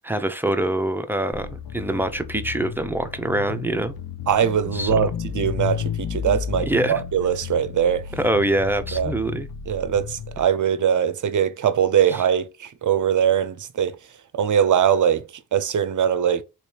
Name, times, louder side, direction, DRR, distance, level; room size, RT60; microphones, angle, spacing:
voice 1, 0.0-3.9 4.7-4.9 6.7-6.9 8.2-9.5 12.1-12.2, right 1 dB, 5° right, 0.5 m, -24 dB
sound 1, 1.3-10.4, left 8 dB, 60° left, 0.6 m, -32 dB
voice 2, 4.3-8.1 8.9-9.1 9.7-13.9 14.3-16.4, right 8 dB, 50° right, 0.6 m, -21 dB
3.2 x 3.0 x 2.8 m
cardioid pair, 55°, 41 cm